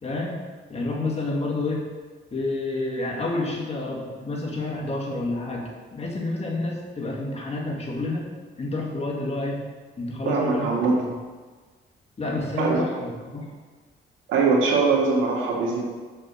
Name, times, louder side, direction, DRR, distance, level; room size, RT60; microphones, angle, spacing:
voice 1, 0.0-0.4 0.7-1.9 2.3-8.3 8.6-9.6 10.0-10.7 10.9-11.0 12.2-13.5, left 2 dB, 30° left, -2 dB, 2.1 m, -29 dB
voice 2, 10.3-11.0 12.6-12.8 14.3-15.8, right 4 dB, 85° right, -2 dB, 1.9 m, -22 dB
6.6 x 5.9 x 6.2 m, 1.4 s
cardioid pair, 90°, 20 cm